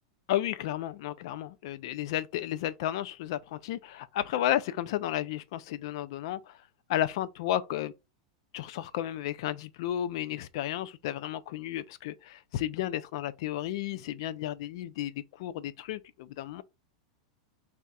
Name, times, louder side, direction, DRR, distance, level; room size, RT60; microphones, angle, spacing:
voice 1, 0.3-6.6 6.9-7.9 8.5-16.6, left 12 dB, 60° left, 0.4 m, -33 dB
3.4 x 2.4 x 4.1 m
supercardioid pair, 150°, 3 cm